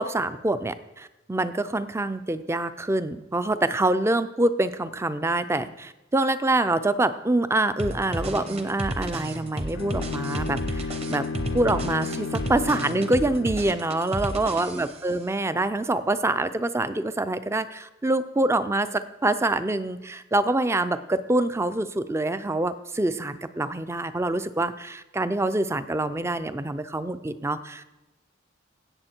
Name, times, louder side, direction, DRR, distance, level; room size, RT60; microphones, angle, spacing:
voice 1, 0.0-11.2 11.5-28.0, right 2 dB, 15° right, 13 dB, 0.4 m, -25 dB
sound 1, 7.8-15.1, right 1 dB, 30° right, 0.9 m, -32 dB
Bowed string instrument, 9.7-13.8, left 5 dB, 75° left, 0.5 m, -33 dB
16.5 x 7.1 x 4.4 m, 1.0 s
head